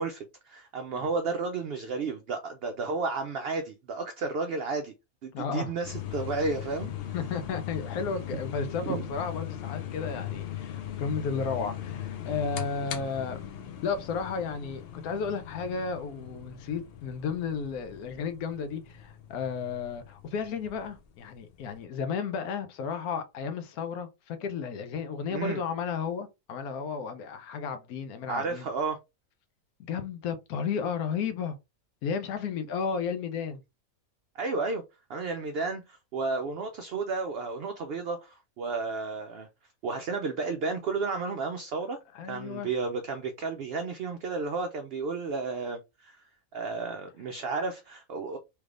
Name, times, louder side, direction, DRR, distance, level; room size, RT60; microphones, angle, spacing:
voice 1, 0.0-4.9 5.2-6.9 8.9-9.0 25.3-25.6 28.3-29.0 34.3-34.8 35.1-39.5 39.8-42.0 42.3-46.2 46.5-48.4, right 4 dB, 75° right, 0.5 m, -32 dB
voice 2, 5.3-5.7 7.1-13.5 13.8-28.6 29.8-31.6 32.0-33.6 42.1-42.7, left 5 dB, 90° left, 1.1 m, -33 dB
sound 1, 5.8-21.8, left 10 dB, 65° left, 0.6 m, -39 dB
3.3 x 3.1 x 2.4 m
omnidirectional pair, 1.5 m